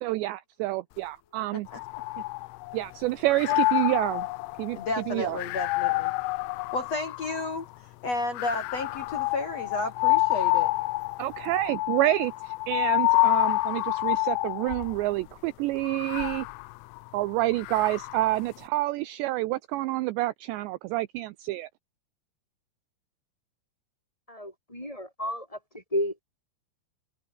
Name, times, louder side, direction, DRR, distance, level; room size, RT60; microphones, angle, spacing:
voice 1, 0.0-1.7 2.7-4.3 4.6-4.8 5.1-5.4 11.2-16.5 17.1-21.7, right 17 dB, 80° right, 2.7 m, -28 dB
sound 1, 1.7-2.9 3.3-7.7 8.3-15.0 15.8-18.4, left 22 dB, 90° left, 3.2 m, -28 dB
voice 2, 4.7-6.1 6.7-7.6 8.0-10.7, left 3 dB, 40° left, 3.2 m, -32 dB
voice 3, 24.3-26.3, left 1 dB, 5° left, 6.1 m, -32 dB
omnidirectional pair, 5.5 m